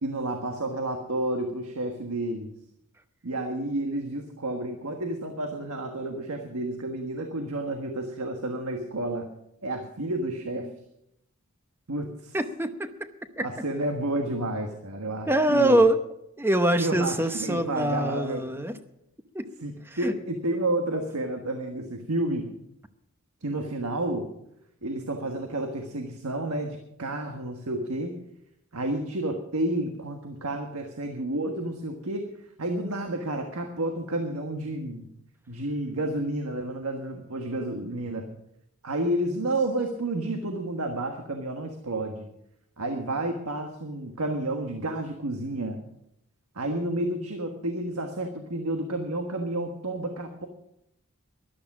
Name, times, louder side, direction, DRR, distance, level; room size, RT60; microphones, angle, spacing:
voice 1, 0.0-2.5 3.2-9.3 9.6-10.7 11.9-12.4 13.4-15.8 16.8-18.4 19.6-22.5 23.4-24.3 24.8-28.2 28.7-32.3 32.6-35.1 35.5-38.3 38.8-42.3 42.8-45.8 46.5-50.5, right 1 dB, 75° right, 5 dB, 1.5 m, -30 dB
voice 2, 12.3-13.1 13.4-13.5 15.3-16.0 16.4-18.8 19.3-19.5 19.9-20.1, right 1 dB, 10° right, 10 dB, 0.8 m, -24 dB
13.5 x 11.5 x 6.0 m, 0.80 s
head